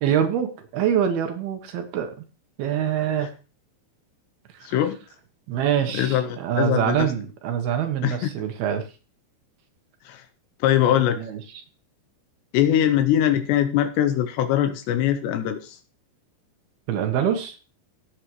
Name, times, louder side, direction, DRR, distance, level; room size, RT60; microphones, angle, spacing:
voice 1, 0.0-2.3 2.6-3.3 4.5-4.8 5.5-8.9 11.2-11.6 16.9-17.6, right 9 dB, 70° right, 7 dB, 2.9 m, -25 dB
voice 2, 4.6-5.0 5.9-7.1 8.0-8.3 10.0-10.3 10.6-11.2 12.5-15.8, left 11 dB, 80° left, 8 dB, 2.9 m, -22 dB
16.5 x 8.8 x 3.1 m, 0.34 s
omnidirectional pair, 5.0 m